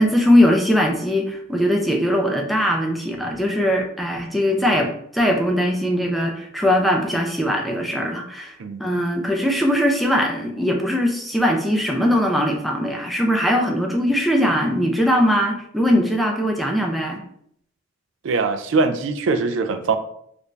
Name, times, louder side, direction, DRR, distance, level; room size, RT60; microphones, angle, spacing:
voice 1, 0.0-17.2, equal, ahead, 1 dB, 0.4 m, -20 dB
voice 2, 18.2-20.0, right 4 dB, 65° right, 8 dB, 0.4 m, -22 dB
3.2 x 2.5 x 3.2 m, 0.69 s
head